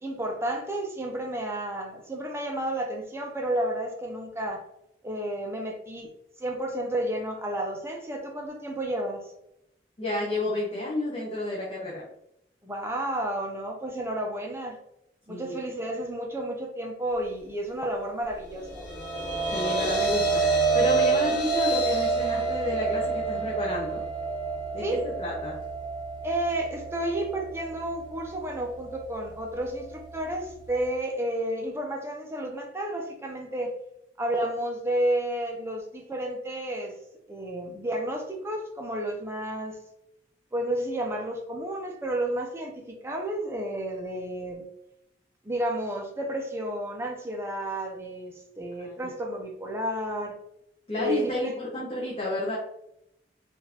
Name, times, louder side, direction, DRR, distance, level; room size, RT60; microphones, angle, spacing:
voice 1, 0.0-4.6 5.0-6.1 6.4-9.3 12.6-14.8 15.3-18.9 24.8-25.0 26.2-33.7 34.2-36.9 37.3-39.8 40.5-44.7 45.4-50.3 51.0-51.5, right 1 dB, 15° right, 1 dB, 0.5 m, -31 dB
voice 2, 10.0-12.0 15.3-15.6 19.5-20.5 20.7-24.0 24.7-25.6 48.8-49.0 50.9-52.6, left 1 dB, 30° left, -4 dB, 0.6 m, -31 dB
sound 1, 18.5-30.9, right 4 dB, 80° left, 1.1 m, -29 dB
3.6 x 2.5 x 2.8 m, 0.79 s
head